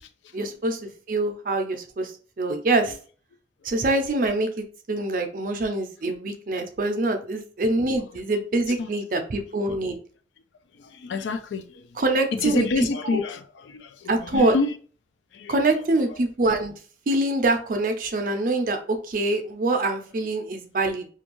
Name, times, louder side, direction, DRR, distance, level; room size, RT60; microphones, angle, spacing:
voice 1, 0.3-2.1 2.4-3.0 3.6-10.0 12.0-13.2 14.1-14.5 15.5-16.7 17.1-21.1, right 2 dB, 50° right, 0.4 m, -25 dB
voice 2, 10.9-11.8 12.3-13.4 13.7-14.7 15.3-15.6, left 4 dB, 90° left, 0.4 m, -27 dB
2.5 x 2.3 x 3.0 m
head